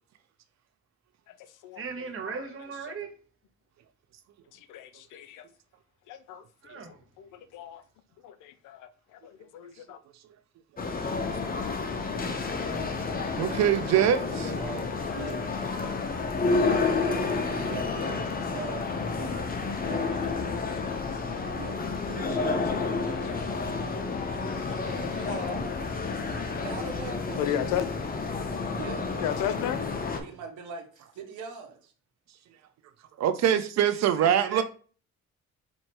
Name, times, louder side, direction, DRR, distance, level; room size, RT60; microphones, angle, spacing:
voice 1, 1.8-3.1 6.6-7.0 34.2-34.6, right 6 dB, 45° right, 1.0 m, -37 dB
voice 2, 4.5-5.4 6.1-6.4 6.7-7.8 8.2-10.0 11.6-11.7 12.7-12.9 13.2-13.5 15.4-15.9 17.1-17.3 18.3-18.4 20.9-21.0 21.3-21.5 22.2-22.5 23.0-23.3 24.1-25.0 27.4-27.8 29.1-29.9, left 10 dB, 90° left, 0.5 m, -36 dB
sound 1, 10.8-30.2, left 4 dB, 30° left, 0.7 m, -30 dB
voice 3, 13.4-14.5 33.2-34.6, right 9 dB, 65° right, 0.5 m, -23 dB
voice 4, 14.5-15.4 16.8-20.6 21.5-22.7 24.4-25.8 26.2-27.5 28.7-29.0 30.2-31.9, right 5 dB, 85° right, 1.0 m, -42 dB
4.5 x 2.7 x 2.9 m
cardioid pair, 90°, 30 cm